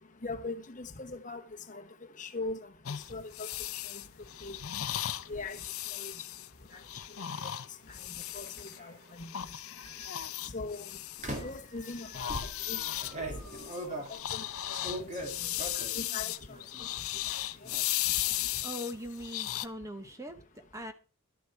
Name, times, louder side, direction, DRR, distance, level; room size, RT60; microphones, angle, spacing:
voice 1, 0.2-1.4 1.7-1.8 2.2-2.6 3.1-3.5 3.7-3.8 4.4-4.6 5.3-5.6 5.9-6.1 7.4-7.5 8.3-8.5 8.8-9.3 10.5-10.8 11.4-12.3 12.7-12.8 13.9-14.0 14.3-14.4 14.7-15.1 15.7-16.3 17.3-17.4, left 3 dB, 35° left, 1.1 m, -39 dB
sound 1, 2.9-8.8 9.2-11.6 11.9-19.7, left 13 dB, 70° left, 0.7 m, -36 dB
sound 2, 4.9-5.5 7.2-7.4 8.2-9.0 9.8-10.1 11.2-11.7 12.3-16.0 16.4-17.0 17.2-17.8, right 1 dB, 30° right, 2.3 m, -41 dB
sound 3, 11.3-16.3, right 1 dB, 65° right, 6.6 m, -56 dB
voice 2, 18.6-20.9, equal, 15° right, 1.0 m, -41 dB
12.5 x 10.5 x 4.6 m
head